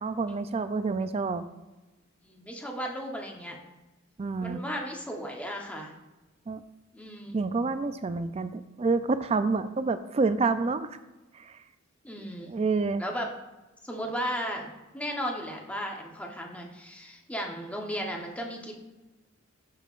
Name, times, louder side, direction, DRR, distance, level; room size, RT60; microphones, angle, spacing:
voice 1, 0.0-1.5 4.2-4.6 6.5-6.6 7.3-10.9 11.3-11.6 12.5-13.0, right 4 dB, 30° right, 12 dB, 0.4 m, -28 dB
voice 2, 2.2-3.6 4.4-5.9 6.9-7.4 12.0-12.5 13.0-13.3 13.8-18.7, equal, 5° left, 1 dB, 0.9 m, -35 dB
12.0 x 5.5 x 2.5 m, 1.1 s
head